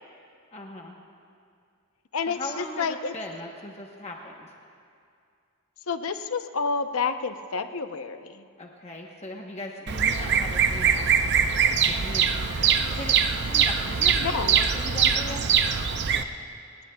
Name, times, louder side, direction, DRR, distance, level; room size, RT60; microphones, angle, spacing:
voice 1, 0.5-1.0 2.3-4.5 8.6-11.3 11.9-15.4, left 2 dB, 30° left, 0 dB, 1.0 m, -39 dB
voice 2, 2.1-3.1 5.9-8.5 14.2-14.6, left 5 dB, 65° left, 8 dB, 0.7 m, -29 dB
Bird vocalization bird call bird song, 9.9-16.2, right 7 dB, 50° right, 0.6 m, -23 dB
29.5 x 18.5 x 2.3 m, 2.4 s
head